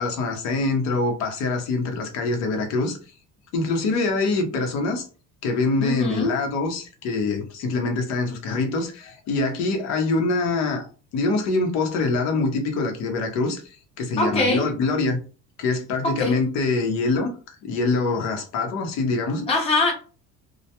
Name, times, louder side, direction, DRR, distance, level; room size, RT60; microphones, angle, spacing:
voice 1, 0.0-3.0 3.5-5.1 5.4-10.8 11.1-15.2 15.6-17.3 17.6-19.5, left 3 dB, 65° left, 0.8 m, -24 dB
voice 2, 5.8-6.3 14.2-14.6 16.0-16.4 19.5-19.9, left 2 dB, 20° left, 0.7 m, -22 dB
2.2 x 2.1 x 2.8 m
cardioid pair, 160°, 29 cm